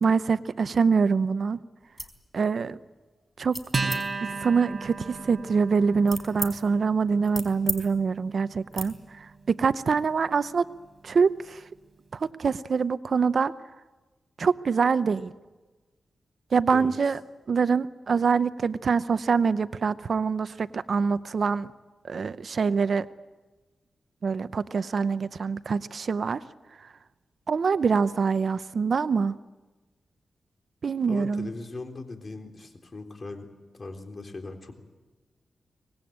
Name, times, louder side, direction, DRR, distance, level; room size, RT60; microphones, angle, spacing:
voice 1, 0.0-1.6 2.3-2.8 3.4-3.6 4.2-10.7 11.0-11.6 12.1-13.5 14.4-15.3 16.5-17.2 17.5-21.7 22.1-23.1 24.2-26.4 27.5-29.4 30.8-31.5, right 5 dB, 60° right, 14 dB, 0.8 m, -25 dB
sound 1, 1.8-2.2 2.6-3.0 3.5-4.0 4.7-6.5 6.9-7.8 8.1-8.3 8.7-8.9, equal, 5° left, 4.3 m, -36 dB
Acoustic guitar, 3.7-10.6, right 3 dB, 35° right, 4.1 m, -36 dB
voice 2, 31.1-33.5 33.7-34.7, left 3 dB, 45° left, 4 dB, 3.8 m, -39 dB
24.5 x 20.0 x 8.8 m, 1.2 s
cardioid pair, 75°, 0 cm